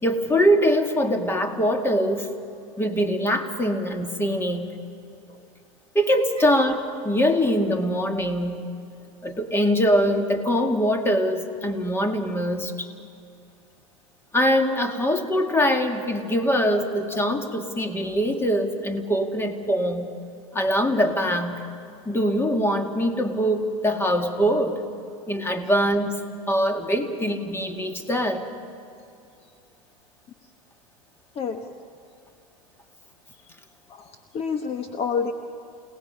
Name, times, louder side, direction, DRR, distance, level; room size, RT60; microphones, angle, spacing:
voice 1, 0.0-2.3 2.8-4.7 5.9-8.7 9.2-12.9 14.3-20.1 20.5-21.6 22.1-24.8 25.3-26.2 26.5-28.4, equal, 15° left, 5 dB, 2.0 m, -23 dB
voice 2, 33.9-35.3, left 6 dB, 35° left, 6 dB, 1.2 m, -28 dB
29.5 x 18.5 x 5.6 m, 2.6 s
hypercardioid pair, 100°, 18 cm